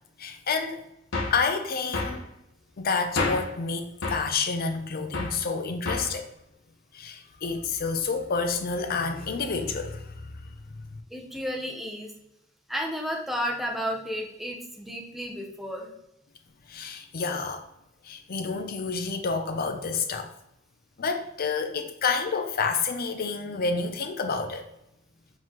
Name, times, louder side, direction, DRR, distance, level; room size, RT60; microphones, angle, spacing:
voice 1, 0.2-0.8 1.3-2.3 2.8-6.3 6.9-10.3 16.7-17.7 18.0-20.3 21.0-24.7, left 4 dB, 50° left, 6 dB, 0.5 m, -29 dB
sound 1, 1.1-1.4 1.9-2.2 3.2-3.5 4.0-4.3 5.1-5.4 5.8-6.2, left 3 dB, 65° left, 1.0 m, -29 dB
voice 2, 11.1-12.1 12.7-15.9, equal, ahead, 1 dB, 0.7 m, -32 dB
4.6 x 3.7 x 2.9 m, 0.85 s
head